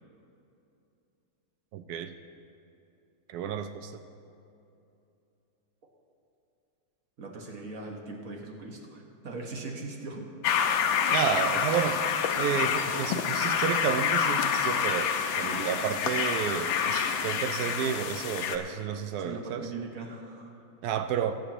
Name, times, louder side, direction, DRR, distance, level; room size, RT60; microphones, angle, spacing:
voice 1, 1.7-2.1 3.3-3.9 11.1-12.0 12.4-19.7 20.8-21.3, right 8 dB, 80° right, 9 dB, 0.8 m, -31 dB
voice 2, 7.2-10.3 19.2-20.6, right 3 dB, 45° right, 0 dB, 1.6 m, -40 dB
sound 1, 10.4-18.6, left 7 dB, 80° left, 1.5 m, -28 dB
20.0 x 9.2 x 3.0 m, 2.8 s
omnidirectional pair, 2.2 m